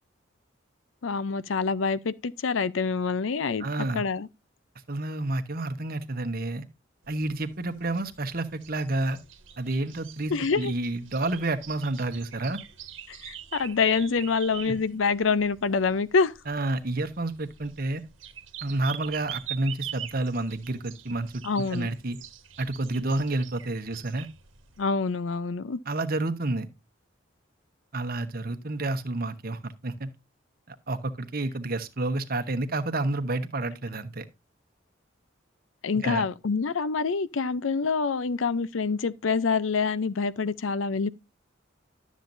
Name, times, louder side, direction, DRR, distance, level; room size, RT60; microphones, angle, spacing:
voice 1, 1.0-3.7 3.9-4.3 10.3-10.7 13.1-16.3 21.4-21.9 24.8-25.8 35.8-41.1, left 4 dB, 80° left, 0.6 m, -26 dB
voice 2, 3.6-4.0 4.9-6.7 7.1-9.2 9.6-12.6 14.7-14.8 16.5-18.0 18.6-22.2 22.6-24.3 25.9-26.7 27.9-30.1 30.7-34.2 36.0-36.3, right 2 dB, 50° right, 1.0 m, -30 dB
sound 1, 7.0-24.8, right 10 dB, 75° right, 1.3 m, -44 dB
12.5 x 7.3 x 2.6 m
head